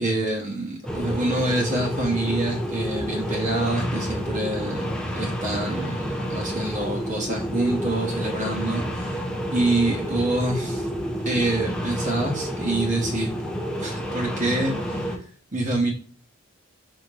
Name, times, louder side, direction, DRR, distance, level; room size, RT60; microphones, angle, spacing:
voice 1, 0.0-4.9 5.1-9.2 9.5-10.9 11.2-13.3 13.8-15.1 15.5-15.9, right 2 dB, 35° right, -1 dB, 1.0 m, -26 dB
sound 1, 0.9-15.2, equal, 5° left, 0.6 m, -29 dB
4.7 x 4.3 x 2.5 m, 0.43 s
head